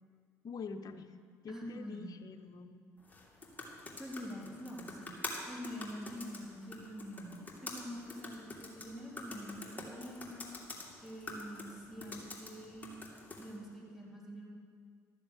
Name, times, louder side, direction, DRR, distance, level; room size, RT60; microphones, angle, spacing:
voice 1, 0.4-1.2 1.4-2.9, left 5 dB, 50° left, 7 dB, 0.9 m, -46 dB
voice 2, 1.5-2.2 4.0-5.1 5.5-7.4 7.6-10.5 11.0-13.0 13.4-14.6, equal, 5° right, -4 dB, 3.9 m, -45 dB
sound 1, 3.0-13.6, left 2 dB, 20° left, 2.6 m, -47 dB
12.5 x 7.1 x 8.2 m, 2.1 s
hypercardioid pair, 65°, 8 cm